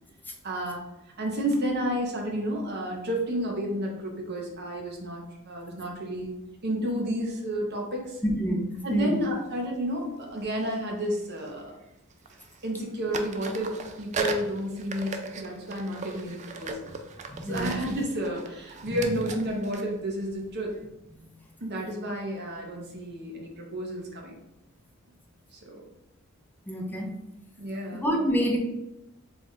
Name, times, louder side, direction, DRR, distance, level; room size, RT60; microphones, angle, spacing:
voice 1, 0.4-0.8 1.2-6.3 6.6-8.2 8.8-11.7 12.6-16.9 17.4-20.8 21.6-24.3 25.5-25.8 27.6-28.0, equal, 50° right, 0 dB, 0.9 m, -31 dB
voice 2, 8.2-8.7 8.9-9.2 14.2-14.3 17.3-17.8 26.7-27.1 28.0-28.6, equal, 10° left, 0 dB, 0.6 m, -27 dB
sound 1, 9.0-9.1 10.5-11.8 12.1-12.8 13.1-20.8, right 4 dB, 35° right, 0.3 m, -38 dB
3.4 x 2.4 x 4.0 m, 0.89 s
head